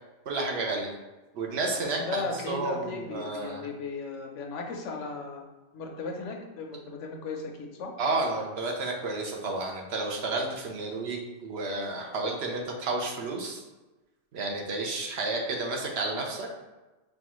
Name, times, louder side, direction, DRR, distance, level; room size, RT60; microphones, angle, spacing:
voice 1, 0.3-0.9 1.3-3.7 8.0-13.6 14.3-16.5, right 2 dB, 65° right, 0 dB, 0.9 m, -31 dB
voice 2, 1.8-5.4 5.7-7.9, left 4 dB, 85° left, 2 dB, 1.0 m, -36 dB
5.3 x 2.3 x 3.0 m, 1.1 s
omnidirectional pair, 1.2 m